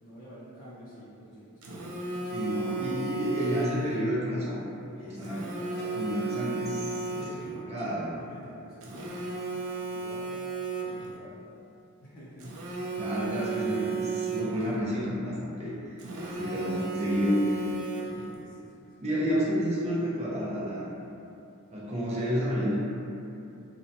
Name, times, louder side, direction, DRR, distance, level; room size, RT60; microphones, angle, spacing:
voice 1, 0.0-2.5 2.8-3.0 5.0-6.3 7.0-9.2 9.9-10.4 10.9-11.5 12.0-12.8 16.2-17.2 18.4-19.1, equal, 40° left, -9 dB, 0.4 m, -49 dB
Telephone, 1.6-4.0 5.2-7.6 8.8-11.2 12.4-14.8 16.0-18.4, right 4 dB, 85° right, 0.4 m, -34 dB
voice 2, 2.3-4.7 5.0-5.4 5.9-8.1 12.9-16.0 16.4-17.4 19.0-20.8 21.7-22.8, equal, 30° right, -6 dB, 0.5 m, -30 dB
sound 1, 5.8-6.2 7.8-8.1, left 1 dB, 10° left, 0.8 m, -49 dB
2.8 x 2.0 x 2.6 m, 2.7 s
head